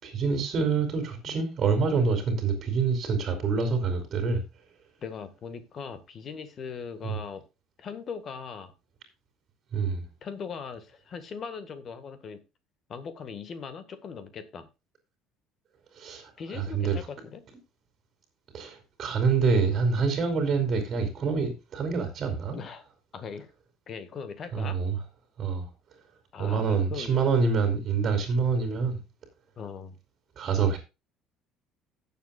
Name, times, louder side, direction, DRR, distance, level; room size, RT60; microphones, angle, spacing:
voice 1, 0.0-4.4 7.0-7.2 9.7-10.1 15.9-17.0 18.5-22.6 24.5-25.0 25.4-25.7 26.4-29.0 30.4-30.8, right 5 dB, 30° right, 2.9 m, -26 dB
voice 2, 5.0-7.4 7.8-8.7 10.2-12.4 12.9-14.7 16.4-17.4 22.5-22.8 23.1-23.5 23.9-24.8 26.3-27.2 29.6-30.0, left 6 dB, 35° left, 1.7 m, -39 dB
16.5 x 7.2 x 2.4 m
cardioid pair, 160°, 0 cm